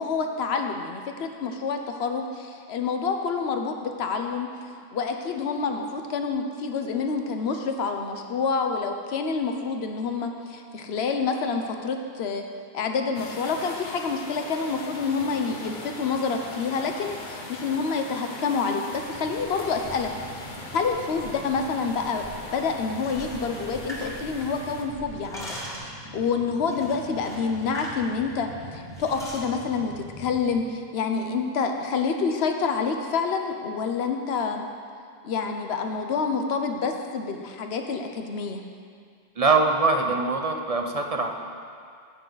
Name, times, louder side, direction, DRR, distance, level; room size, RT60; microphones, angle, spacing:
voice 1, 0.0-12.4 12.7-20.1 20.7-22.3 22.5-34.7 35.2-38.6, left 5 dB, 80° left, 5 dB, 1.0 m, -28 dB
sound 1, 13.1-24.8, left 2 dB, 50° left, 1.3 m, -40 dB
sound 2, 18.9-30.5, equal, 80° right, 3.7 m, -44 dB
sound 3, 22.9-24.8 25.1-26.0 26.7-28.0 28.3-28.5 28.9-29.5, equal, 5° left, 2.0 m, -40 dB
voice 2, 39.4-41.3, right 3 dB, 35° right, 3 dB, 0.9 m, -23 dB
15.0 x 9.1 x 4.0 m, 2.2 s
omnidirectional pair, 1.1 m